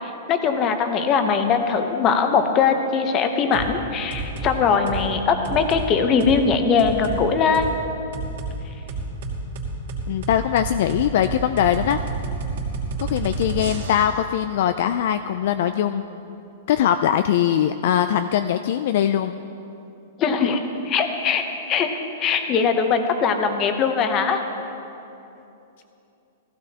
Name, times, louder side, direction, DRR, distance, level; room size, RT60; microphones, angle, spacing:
voice 1, 0.3-7.7 20.2-21.4 21.7-21.9 22.2-24.4, left 5 dB, 25° left, 6 dB, 0.8 m, -21 dB
sound 1, 3.5-3.7 4.1-4.5 4.9-5.1 5.4-5.8 6.2-6.3 6.8-7.2 7.5-7.7 8.1-8.5 8.9-14.2, right 4 dB, 70° right, 2.7 m, -29 dB
voice 2, 10.1-12.0 13.0-16.0 16.7-19.3, left 10 dB, 50° left, 10 dB, 0.3 m, -21 dB
15.5 x 15.5 x 2.9 m, 2.8 s
hypercardioid pair, 165°, 0 cm